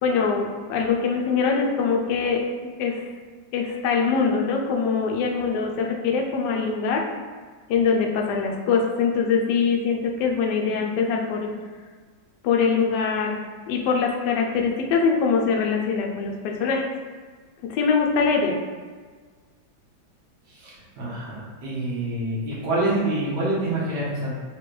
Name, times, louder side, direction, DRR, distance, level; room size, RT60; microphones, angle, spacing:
voice 1, 0.0-2.4 2.8-3.0 3.5-7.0 7.7-11.5 12.4-13.4 13.7-16.8 17.7-18.5, left 5 dB, 70° left, 1 dB, 1.1 m, -23 dB
voice 2, 20.5-24.3, right 1 dB, 60° right, -7 dB, 1.8 m, -27 dB
5.1 x 2.9 x 3.1 m, 1.5 s
omnidirectional pair, 2.1 m